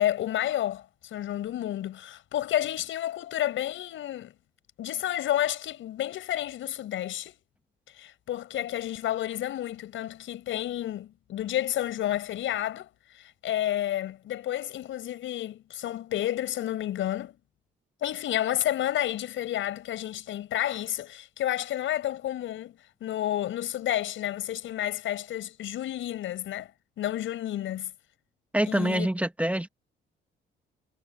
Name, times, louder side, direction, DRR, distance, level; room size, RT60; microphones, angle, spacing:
voice 1, 0.0-4.3 4.8-7.4 7.9-12.9 13.1-17.4 18.0-26.7 27.0-27.9 28.7-29.1, left 12 dB, 80° left, 6.9 m, -30 dB
voice 2, 28.5-29.7, right 1 dB, 5° right, 1.5 m, -26 dB
cardioid pair, 90°, 20 cm